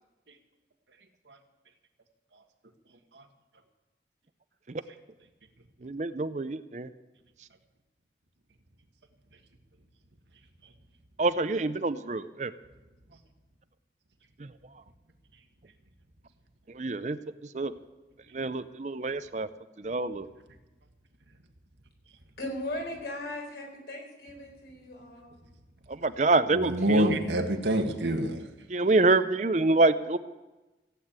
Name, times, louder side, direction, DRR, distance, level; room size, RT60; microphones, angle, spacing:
voice 1, 5.8-6.9 11.2-12.5 14.4-14.5 16.7-17.2 17.5-17.7 18.3-19.5 19.8-20.3 25.9-27.1 28.7-30.2, right 3 dB, 40° right, 13 dB, 0.5 m, -26 dB
voice 2, 22.4-25.3, left 1 dB, 70° left, 0 dB, 4.3 m, -38 dB
voice 3, 26.5-28.4, right 1 dB, 85° right, 4 dB, 1.7 m, -26 dB
15.5 x 8.5 x 8.8 m, 1.1 s
head